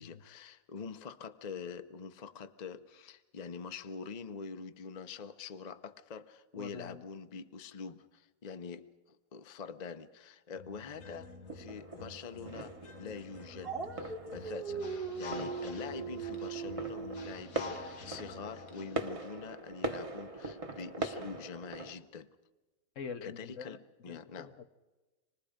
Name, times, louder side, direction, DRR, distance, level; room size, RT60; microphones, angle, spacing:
voice 1, 0.0-22.3 23.2-24.5, left 5 dB, 35° left, 0.8 m, -45 dB
voice 2, 6.6-7.0 23.0-23.8 24.1-24.6, left 6 dB, 65° left, 1.3 m, -45 dB
sound 1, 10.5-19.3, left 4 dB, 85° left, 1.7 m, -49 dB
sound 2, 11.5-21.9, right 2 dB, 25° right, 1.2 m, -42 dB
Dog, 13.6-17.3, right 5 dB, 45° right, 1.7 m, -39 dB
27.0 x 20.0 x 5.1 m
omnidirectional pair, 1.5 m